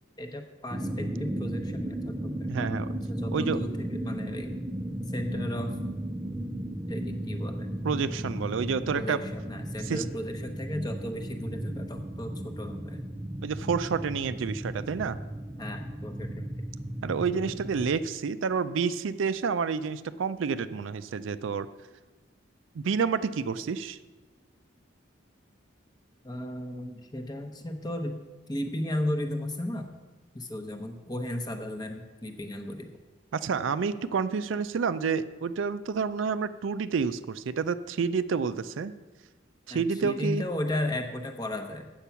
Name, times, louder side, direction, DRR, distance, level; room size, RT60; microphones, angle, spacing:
voice 1, 0.2-4.5 5.1-5.8 6.9-7.7 8.9-13.0 15.6-16.6 26.2-28.2 28.5-29.9 30.3-32.9 39.7-41.9, left 1 dB, 20° left, 6 dB, 0.8 m, -35 dB
sound 1, 0.7-17.9, right 1 dB, 15° right, 0.4 m, -35 dB
voice 2, 2.5-2.9 3.3-3.6 7.8-9.2 9.9-10.0 13.4-15.2 17.0-21.7 22.7-24.0 33.3-38.9 39.7-40.4, right 5 dB, 75° right, 13 dB, 0.4 m, -29 dB
8.3 x 7.1 x 5.7 m, 1.3 s
head